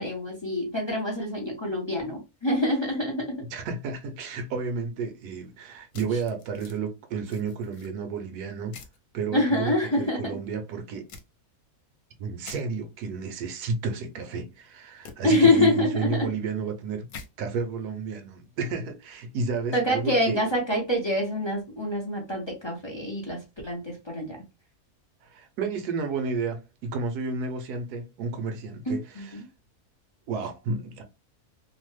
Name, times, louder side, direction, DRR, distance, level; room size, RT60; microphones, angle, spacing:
voice 1, 0.0-3.4 9.3-10.4 15.2-16.3 19.7-24.4 28.9-29.5, left 1 dB, 30° left, 0.6 m, -26 dB
voice 2, 3.5-8.8 9.1-11.1 12.2-17.1 17.4-20.4 25.2-29.3 30.3-31.0, right 4 dB, 85° right, 1.2 m, -31 dB
sound 1, 5.9-6.8 7.2-7.9 8.7-9.0 11.1-11.2 12.4-12.6 15.0-15.1 17.1-17.3, left 6 dB, 80° left, 1.1 m, -45 dB
3.0 x 2.0 x 3.1 m
omnidirectional pair, 1.6 m